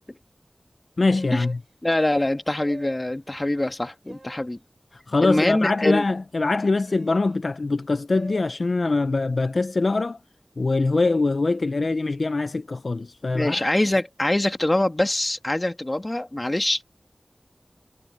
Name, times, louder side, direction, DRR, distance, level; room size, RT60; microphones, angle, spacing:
voice 1, 1.0-1.6 4.9-10.2 10.6-13.6, left 3 dB, 80° left, 0.5 m, -23 dB
sound 1, 1.0-1.6 2.5-3.1 4.0-4.5 5.4-6.0 6.9-7.3 8.1-8.4, right 2 dB, 50° right, 6.2 m, -44 dB
voice 2, 1.8-4.6 5.2-6.0 13.3-16.9, left 1 dB, 30° left, 2.0 m, -24 dB
wide cardioid pair, 65°, 0 cm